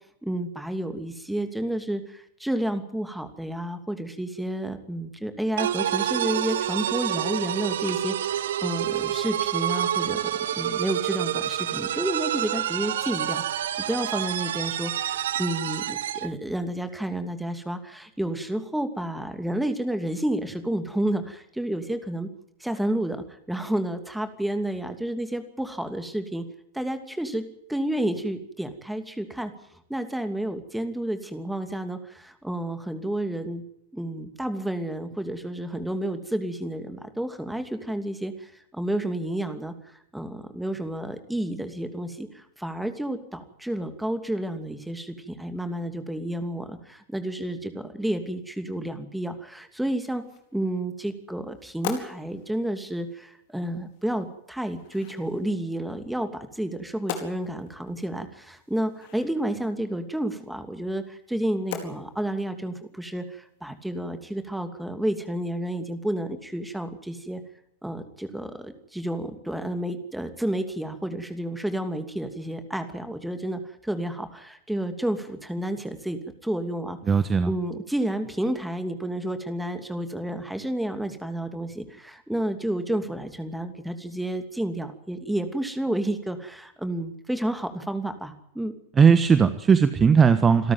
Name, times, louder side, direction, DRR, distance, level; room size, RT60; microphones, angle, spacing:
voice 1, 0.2-22.3 22.6-26.5 26.7-27.4 27.7-29.5 29.9-33.6 33.9-50.2 50.5-67.4 67.8-77.0 77.4-88.7, right 1 dB, 5° right, 9 dB, 2.7 m, -30 dB
sound 1, 5.6-16.3, right 11 dB, 65° right, 0.8 m, -28 dB
sound 2, 49.5-64.4, left 8 dB, 55° left, 4.4 m, -44 dB
voice 2, 77.1-77.5 89.0-90.7, right 6 dB, 20° right, 12 dB, 1.3 m, -18 dB
27.5 x 13.0 x 9.5 m, 0.76 s
figure-of-eight pair, 95°, 0 cm